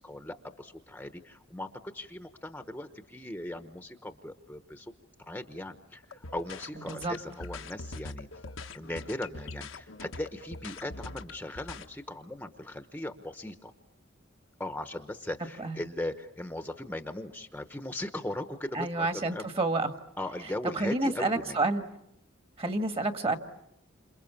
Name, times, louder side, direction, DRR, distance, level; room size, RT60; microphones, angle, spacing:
voice 1, 0.0-4.9 5.3-8.3 8.7-13.7 14.6-19.5 20.2-21.6, left 1 dB, 10° left, 8 dB, 1.0 m, -38 dB
sound 1, 6.0-11.8, left 3 dB, 90° left, 1.3 m, -43 dB
voice 2, 18.7-19.9 20.6-21.8 22.6-23.4, right 2 dB, 30° right, 7 dB, 1.7 m, -29 dB
29.5 x 27.5 x 7.1 m, 0.82 s
head